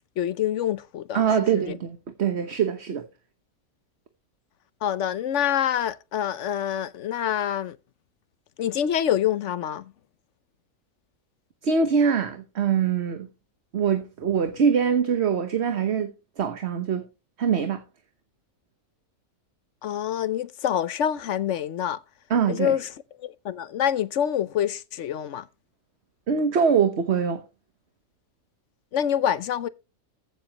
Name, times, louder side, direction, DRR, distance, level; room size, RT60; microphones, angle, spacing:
voice 1, 0.2-1.7 4.8-7.8 8.6-9.9 19.8-22.0 22.5-22.9 23.2-25.5 28.9-29.7, left 10 dB, 60° left, 1.0 m, -26 dB
voice 2, 1.1-3.0 11.6-13.3 13.7-16.1 16.4-17.0 17.4-17.8 22.3-22.7 26.3-27.4, right 6 dB, 50° right, 1.3 m, -23 dB
14.5 x 8.0 x 2.9 m
omnidirectional pair, 1.5 m